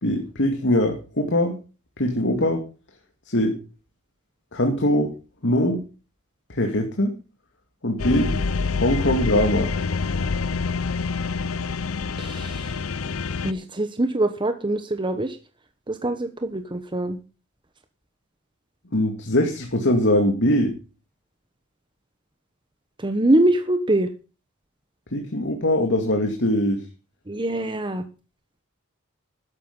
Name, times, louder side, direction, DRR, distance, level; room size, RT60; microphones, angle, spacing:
voice 1, 0.0-1.5 2.0-2.6 3.3-3.6 4.5-5.1 5.4-5.8 6.5-7.1 7.8-8.3 8.8-9.7 18.9-20.8 25.1-26.8, left 1 dB, 60° left, 4 dB, 2.4 m, -22 dB
sound 1, 8.0-13.5, left 4 dB, 75° left, 0.8 m, -26 dB
voice 2, 12.2-12.8 13.4-15.4 15.9-17.2 23.0-24.1 27.3-28.0, right 1 dB, 25° right, 8 dB, 1.1 m, -23 dB
13.0 x 10.5 x 5.5 m, 0.34 s
head